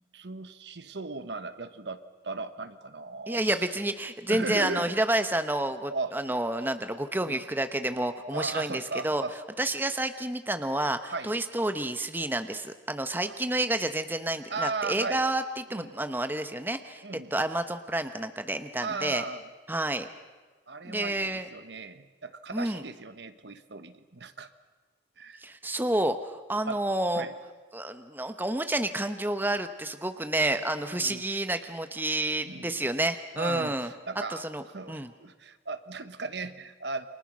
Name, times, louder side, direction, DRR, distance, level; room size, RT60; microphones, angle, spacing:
voice 1, 0.0-3.4 4.3-4.9 5.9-6.1 7.3-7.4 8.2-9.3 11.1-11.3 13.3-13.4 14.5-15.2 15.7-15.9 17.0-17.3 18.8-19.4 20.7-24.5 25.2-25.4 26.6-26.8 27.1-27.3 30.8-31.2 32.4-32.7 33.4-34.4 34.7-37.1, right 3 dB, 65° right, 11 dB, 1.2 m, -36 dB
voice 2, 3.3-9.2 9.6-17.0 17.3-19.2 19.7-20.1 20.8-21.5 22.5-22.8 25.4-27.2 27.7-33.9 34.3-35.1, right 1 dB, 10° right, 8 dB, 0.9 m, -29 dB
29.0 x 24.5 x 6.2 m, 1.3 s
head